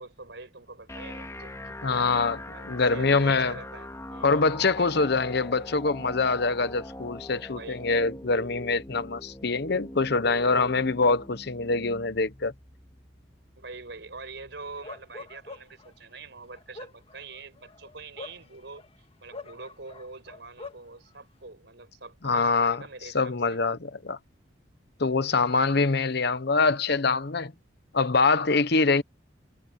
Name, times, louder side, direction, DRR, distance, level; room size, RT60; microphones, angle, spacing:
voice 1, 0.0-5.1 7.4-7.8 13.6-23.6, right 3 dB, 65° right, 5.3 m, -45 dB
sound 1, 0.9-14.9, left 1 dB, 15° left, 1.9 m, -42 dB
voice 2, 1.8-2.4 2.7-3.6 4.2-12.5 22.2-22.8 23.1-24.2 25.0-27.5 27.9-29.0, left 4 dB, 60° left, 1.0 m, -24 dB
Bark, 14.8-15.9 16.5-18.9 19.3-20.9, left 3 dB, 30° left, 1.8 m, -43 dB
head